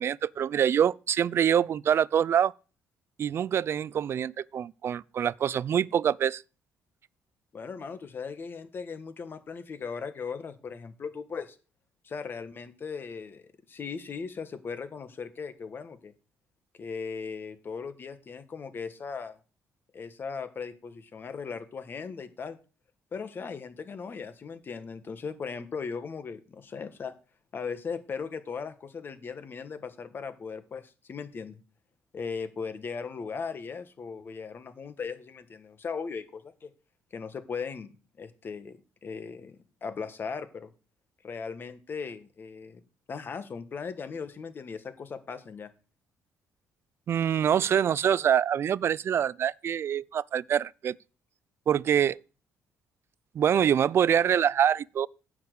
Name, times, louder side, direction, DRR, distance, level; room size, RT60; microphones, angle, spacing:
voice 1, 0.0-2.5 3.2-6.4 47.1-51.0 51.7-52.2 53.3-55.1, right 9 dB, 50° right, 0.4 m, -25 dB
voice 2, 7.5-11.6 12.0-16.1 16.8-19.4 19.9-22.6 23.1-27.1 27.5-31.6 32.1-36.7 37.1-37.9 38.2-38.8 39.0-40.7 41.2-42.8 43.1-45.7, left 5 dB, 40° left, 1.4 m, -38 dB
9.9 x 5.1 x 8.1 m
cardioid pair, 100°, 6 cm